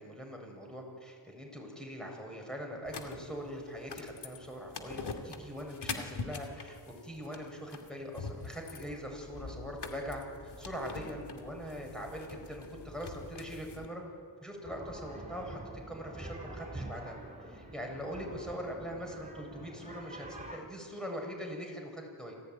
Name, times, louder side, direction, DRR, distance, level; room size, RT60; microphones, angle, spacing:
voice 1, 0.0-14.0 14.4-15.6 15.9-17.2 17.4-22.3, equal, ahead, 0 dB, 7.1 m, -42 dB
sound 1, 2.9-13.9, left 4 dB, 70° left, 2.5 m, -44 dB
sound 2, 14.6-20.6, right 1 dB, 15° right, 7.0 m, -46 dB
27.0 x 16.5 x 9.5 m, 2.2 s
cardioid pair, 70°, 42 cm